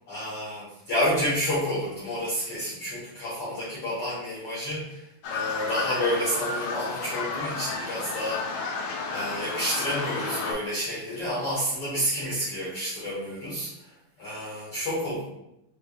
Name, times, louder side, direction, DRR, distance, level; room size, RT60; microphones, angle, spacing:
voice 1, 0.1-8.7 9.1-13.7 14.2-15.2, equal, 60° left, -9 dB, 1.7 m, -30 dB
sound 1, 5.2-10.5, left 4 dB, 80° left, 2.2 m, -32 dB
5.7 x 3.3 x 2.3 m, 0.82 s
omnidirectional pair, 3.8 m